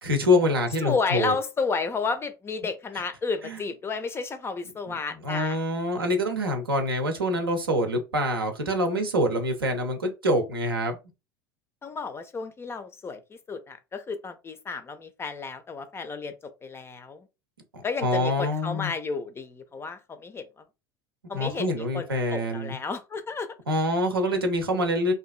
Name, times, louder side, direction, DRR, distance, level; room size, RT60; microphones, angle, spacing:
voice 1, 0.0-1.3 3.4-3.6 4.9-5.0 5.2-11.0 17.7-18.9 21.3-22.8 23.7-25.1, left 1 dB, 80° right, 0.6 m, -25 dB
voice 2, 0.8-5.6 6.0-6.1 11.8-16.3 16.6-17.3 17.8-20.6 21.3-23.5, left 4 dB, 20° left, 0.4 m, -32 dB
2.7 x 2.5 x 2.4 m
figure-of-eight pair, 75°, 12 cm